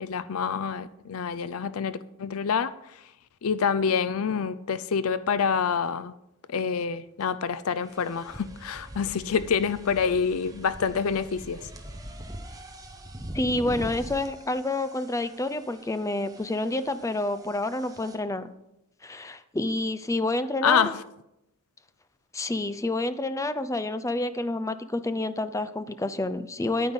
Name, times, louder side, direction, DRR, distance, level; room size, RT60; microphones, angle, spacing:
voice 1, 0.0-2.7 3.4-6.1 6.5-11.6 20.6-21.0, left 6 dB, 70° left, 0.5 m, -27 dB
sound 1, 7.2-7.3 7.8-18.2, right 1 dB, 15° right, 1.1 m, -43 dB
voice 2, 13.3-18.5 19.0-20.9 22.3-26.9, left 2 dB, 15° left, 0.5 m, -28 dB
9.7 x 9.3 x 5.3 m
head